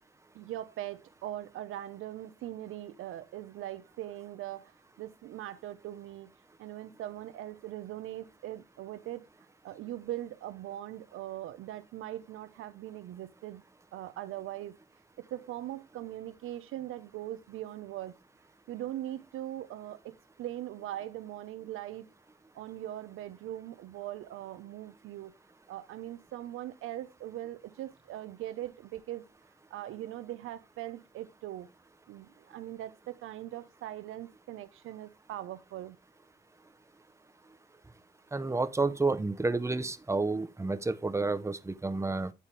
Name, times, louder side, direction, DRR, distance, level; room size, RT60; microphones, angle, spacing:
voice 1, 0.3-6.3 6.6-9.2 9.6-13.6 13.9-14.8 15.2-18.1 18.7-22.1 22.5-25.3 25.7-29.3 29.7-31.7 32.1-36.0, right 13 dB, 85° right, 0.7 m, -41 dB
voice 2, 38.3-42.3, right 3 dB, 15° right, 0.7 m, -30 dB
9.7 x 4.1 x 3.3 m
cardioid pair, 70°, 21 cm